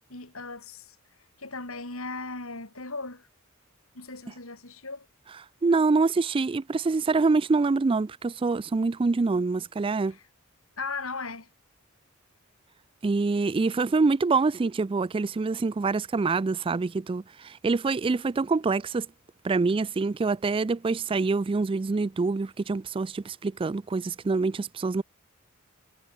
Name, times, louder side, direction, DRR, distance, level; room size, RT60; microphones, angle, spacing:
voice 1, 0.1-1.0 1.4-3.3 3.9-5.1 10.0-10.2 10.8-11.5, left 3 dB, 75° left, 6.6 m, -37 dB
voice 2, 5.6-10.1 13.0-19.1 19.4-25.0, right 4 dB, 25° right, 0.3 m, -25 dB
head